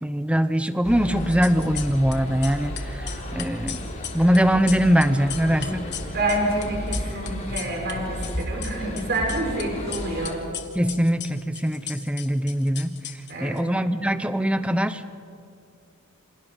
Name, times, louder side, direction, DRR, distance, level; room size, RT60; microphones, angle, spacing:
voice 1, 0.0-5.9 10.7-13.0 13.4-15.0, equal, 5° right, 11 dB, 0.8 m, -22 dB
sound 1, 0.8-10.4, equal, 30° left, 3.8 m, -33 dB
sound 2, 1.2-2.2 2.4-7.9 8.2-9.6 9.9-13.6, left 10 dB, 50° left, 1.6 m, -36 dB
voice 2, 6.1-10.4 13.3-13.6, right 1 dB, 45° right, 1 dB, 4.6 m, -28 dB
28.0 x 26.5 x 5.2 m, 2.4 s
head